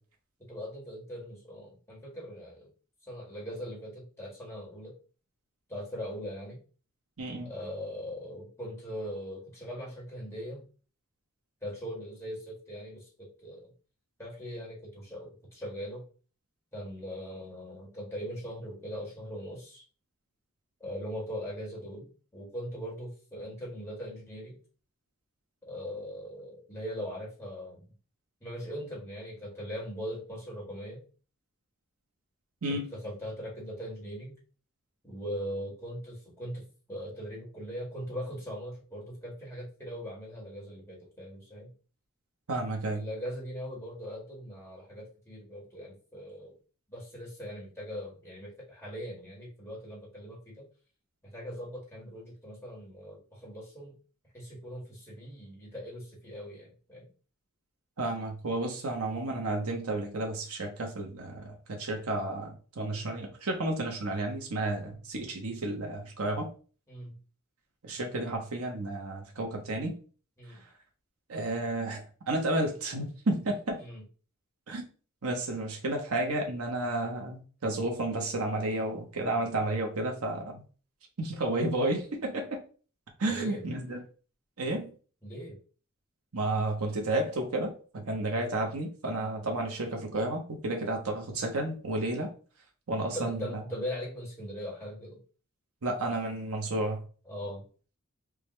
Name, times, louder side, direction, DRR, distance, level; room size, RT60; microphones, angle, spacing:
voice 1, 0.5-2.7 3.1-4.9 5.7-6.6 7.4-10.6 11.6-13.7 14.2-16.0 16.7-19.8 20.8-24.6 25.7-27.8 28.4-31.0 32.7-34.3 35.0-36.6 36.9-41.7 42.9-46.5 46.9-50.6 51.3-53.9 54.3-57.1 62.9-63.1 66.9-67.1 70.4-70.6 73.8-74.0 83.3-83.7 85.2-85.6 93.0-95.2 97.2-97.6, equal, 10° left, 1.6 m, -40 dB
voice 2, 7.2-7.5 32.6-32.9 42.5-43.0 58.0-66.5 67.8-70.0 71.3-72.0 72.3-73.8 74.7-74.9 75.2-80.6 81.2-82.6 83.2-84.0 84.6-84.9 86.3-92.3 92.9-93.6 95.8-97.0, right 2 dB, 80° right, 0.9 m, -32 dB
4.9 x 2.3 x 3.1 m
head